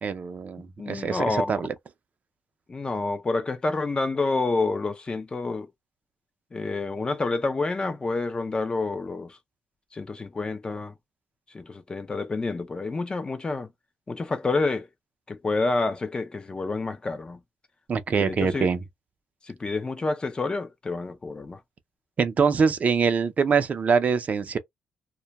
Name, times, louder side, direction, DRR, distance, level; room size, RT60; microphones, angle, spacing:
voice 1, 0.0-1.7 17.9-18.8 22.2-24.6, right 5 dB, 35° right, 0.4 m, -24 dB
voice 2, 0.8-1.6 2.7-5.7 6.5-9.4 9.9-10.9 11.5-13.7 14.1-14.9 15.3-17.4 18.1-18.7 19.4-21.6, left 3 dB, 20° left, 0.4 m, -28 dB
2.2 x 2.1 x 2.8 m
cardioid pair, 115°, 4 cm